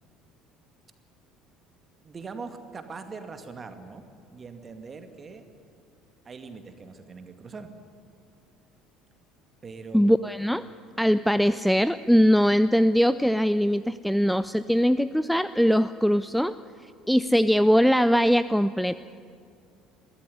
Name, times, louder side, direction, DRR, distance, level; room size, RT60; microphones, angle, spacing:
voice 1, 2.0-5.4 6.2-7.7 9.6-10.0, right 4 dB, 30° right, 7 dB, 2.1 m, -41 dB
voice 2, 9.9-10.6 11.0-16.5 17.1-19.0, equal, ahead, 15 dB, 0.5 m, -21 dB
22.0 x 15.5 x 10.0 m, 2.4 s
figure-of-eight pair, 60°, 0 cm